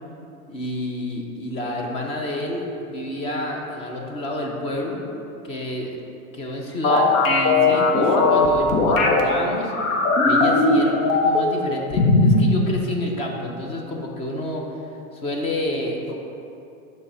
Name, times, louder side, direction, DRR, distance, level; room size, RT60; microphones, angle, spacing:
voice 1, 0.5-5.0 5.4-6.0 6.3-9.7 10.2-14.6 15.1-16.2, left 1 dB, 15° left, 0 dB, 0.4 m, -29 dB
sound 1, 6.8-9.2 9.7-11.6 11.9-12.5, left 3 dB, 75° left, 1.0 m, -18 dB
6.7 x 3.1 x 6.0 m, 2.8 s
supercardioid pair, 145°, 41 cm